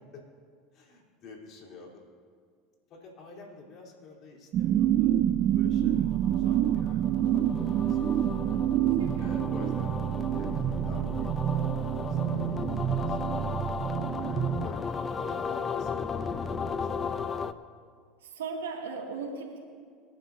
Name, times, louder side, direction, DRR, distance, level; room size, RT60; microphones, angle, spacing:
voice 1, 0.7-2.1 2.9-5.1 5.5-8.6 9.2-12.7 13.0-13.3 14.2-17.1, left 3 dB, 55° left, -2 dB, 3.9 m, -49 dB
sound 1, 4.5-14.7, right 11 dB, 50° right, 0.4 m, -27 dB
sound 2, 6.0-17.5, left 5 dB, 30° left, 0.7 m, -35 dB
voice 2, 9.0-9.4 18.2-19.6, right 4 dB, 90° right, -1 dB, 2.5 m, -37 dB
26.5 x 10.5 x 2.8 m, 2.1 s
hypercardioid pair, 85°, 0 cm